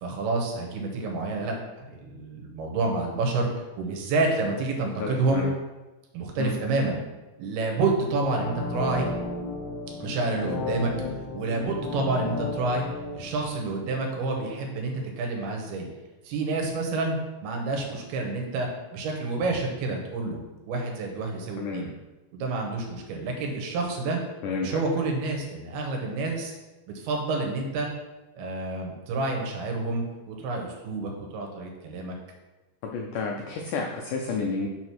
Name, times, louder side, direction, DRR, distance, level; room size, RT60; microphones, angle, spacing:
voice 1, 0.0-3.5 3.8-5.5 6.1-7.0 7.4-9.1 10.0-10.9 11.3-12.8 13.1-15.9 16.2-20.4 20.7-21.9 22.3-24.2 24.6-26.5 26.9-27.9 28.4-32.2, right 3 dB, 80° right, 1 dB, 3.1 m, -28 dB
voice 2, 5.0-5.5 6.4-6.5 21.6-21.9 24.4-24.8 32.8-34.7, left 4 dB, 90° left, 1 dB, 1.8 m, -30 dB
sound 1, 8.0-14.8 15.2-15.3, left 2 dB, 75° left, 1.7 m, -34 dB
6.3 x 4.7 x 5.9 m, 1.1 s
omnidirectional pair, 4.5 m